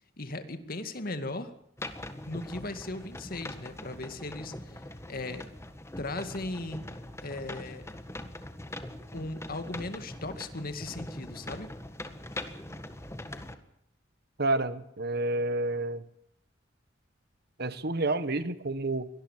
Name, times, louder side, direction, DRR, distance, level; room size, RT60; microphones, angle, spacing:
voice 1, 0.2-1.5 2.2-5.4 6.0-6.8 7.2-7.9 9.1-11.7, left 2 dB, 50° left, 9 dB, 2.2 m, -37 dB
sound 1, 1.8-13.6, left 1 dB, 15° left, 1.7 m, -42 dB
voice 2, 14.4-16.0 17.6-19.1, right 2 dB, 60° right, 13 dB, 1.4 m, -29 dB
24.0 x 19.0 x 7.5 m, 0.72 s
head